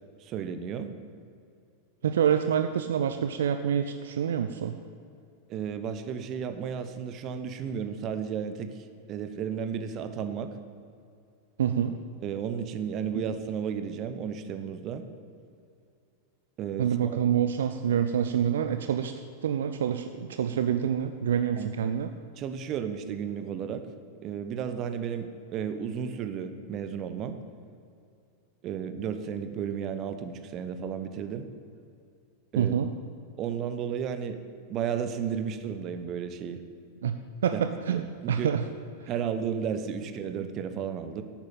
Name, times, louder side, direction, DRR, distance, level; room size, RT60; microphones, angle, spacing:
voice 1, 0.2-0.9 5.5-10.5 12.2-15.0 16.6-16.9 21.6-21.7 22.4-23.8 24.2-27.4 28.6-31.5 32.5-32.7 33.4-34.4 34.7-36.6 37.5-37.6 37.9-38.5 39.1-41.2, right 7 dB, 35° right, 9 dB, 1.1 m, -33 dB
voice 2, 2.0-4.7 11.6-12.0 13.1-13.2 16.8-22.1 32.6-32.9 37.0-38.7, right 8 dB, 60° right, 8 dB, 0.6 m, -27 dB
11.5 x 8.8 x 8.9 m, 2.5 s
figure-of-eight pair, 90°, 0 cm